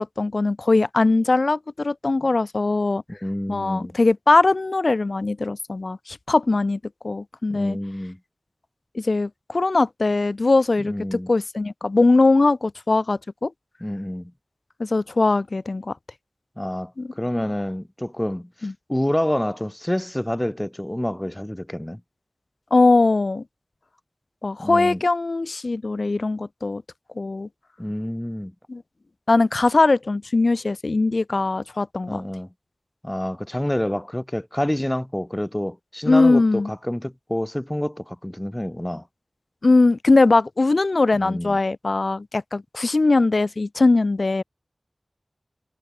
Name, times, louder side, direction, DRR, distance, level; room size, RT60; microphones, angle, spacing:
voice 1, 0.0-3.0 3.5-6.8 7.0-7.8 8.9-13.5 14.8-15.9 17.0-17.1 18.6-18.7 22.7-23.4 24.4-26.8 27.2-27.5 28.7-28.8 29.3-32.2 36.1-36.7 39.6-44.4, left 3 dB, 70° left, 0.3 m, -20 dB
voice 2, 3.1-3.9 7.5-8.2 10.8-11.3 13.8-14.3 16.6-18.5 18.9-22.0 24.6-25.0 27.8-28.5 32.1-32.5 33.0-39.0 41.2-41.6, left 1 dB, 15° left, 1.7 m, -28 dB
wide cardioid pair, 60°, 0 cm